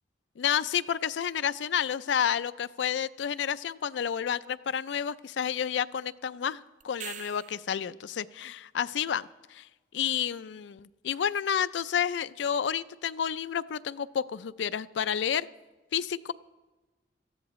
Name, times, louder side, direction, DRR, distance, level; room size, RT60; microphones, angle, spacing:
voice 1, 0.4-15.5 15.9-16.3, left 8 dB, 85° left, 15 dB, 0.4 m, -30 dB
sound 1, 6.8-7.8 12.5-12.6, right 9 dB, 45° right, 0.4 m, -42 dB
18.5 x 13.5 x 3.1 m, 1.2 s
head